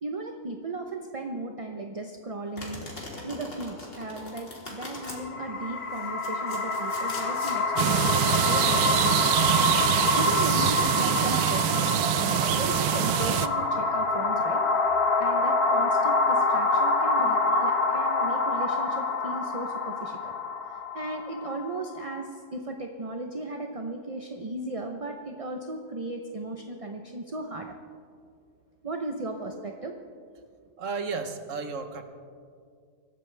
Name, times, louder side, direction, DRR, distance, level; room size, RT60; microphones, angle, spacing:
voice 1, 0.0-2.9 3.2-9.3 10.2-14.6 15.2-20.3 20.9-27.8 28.8-29.9, right 2 dB, 30° right, 4 dB, 0.6 m, -36 dB
Domestic sounds home sounds, 2.6-5.2 5.9-7.6, left 1 dB, 40° left, 2.9 m, -41 dB
sound 1, 5.1-22.2, left 3 dB, 75° left, 1.6 m, -26 dB
sound 2, 7.8-13.5, right 11 dB, 80° right, 1.1 m, -25 dB
voice 2, 30.8-32.0, right 4 dB, 60° right, 7 dB, 1.4 m, -33 dB
25.0 x 13.0 x 3.4 m, 2.2 s
omnidirectional pair, 1.6 m